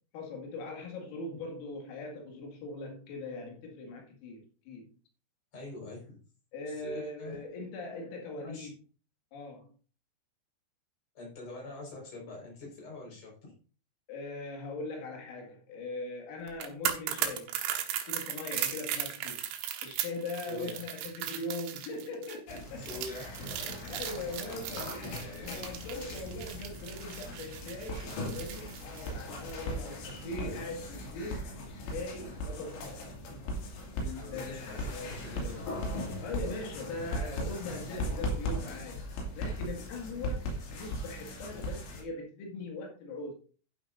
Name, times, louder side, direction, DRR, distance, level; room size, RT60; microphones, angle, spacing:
voice 1, 0.1-4.9 6.5-8.7 9.3-9.7 14.1-17.6 17.8-19.4 19.8-22.9 23.6-33.2 34.0-35.1 36.2-43.3, left 2 dB, 85° left, 4.8 m, -41 dB
voice 2, 5.5-6.2 6.6-7.4 8.4-8.7 11.1-13.5 20.5-20.8 22.8-25.7 30.2-30.5 34.2-35.9 39.4-39.5, left 2 dB, 35° left, 5.7 m, -45 dB
sound 1, 16.5-29.6 29.9-30.1, right 10 dB, 80° right, 3.7 m, -37 dB
sound 2, 22.5-42.0, left 1 dB, 65° left, 4.5 m, -38 dB
12.0 x 10.0 x 2.6 m
omnidirectional pair, 5.8 m